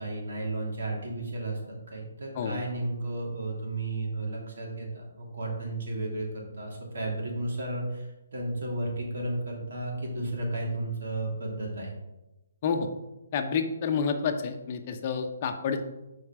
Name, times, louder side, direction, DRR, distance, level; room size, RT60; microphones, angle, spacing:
voice 1, 0.0-6.3 6.6-11.9, right 2 dB, 70° right, -2 dB, 2.9 m, -33 dB
voice 2, 13.3-15.8, left 6 dB, 40° left, 6 dB, 0.8 m, -29 dB
6.4 x 4.6 x 6.0 m, 0.99 s
hypercardioid pair, 150°, 0 cm